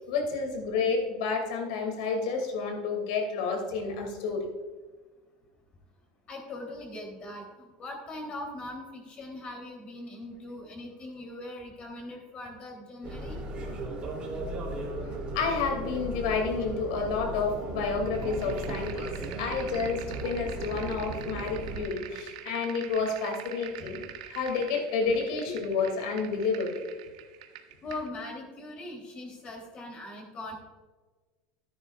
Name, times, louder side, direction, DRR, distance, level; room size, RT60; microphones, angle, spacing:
voice 1, 0.1-4.5 15.3-19.1 19.4-26.9, left 4 dB, 80° left, 3 dB, 2.6 m, -30 dB
voice 2, 6.3-13.4 23.8-23.9 27.8-30.6, left 2 dB, 35° left, 1 dB, 3.4 m, -41 dB
sound 1, 13.0-21.8, right 2 dB, 30° right, 3.0 m, -36 dB
sound 2, 18.0-28.1, right 11 dB, 85° right, 1.1 m, -45 dB
13.5 x 10.0 x 2.5 m, 1.3 s
supercardioid pair, 125°, 3 cm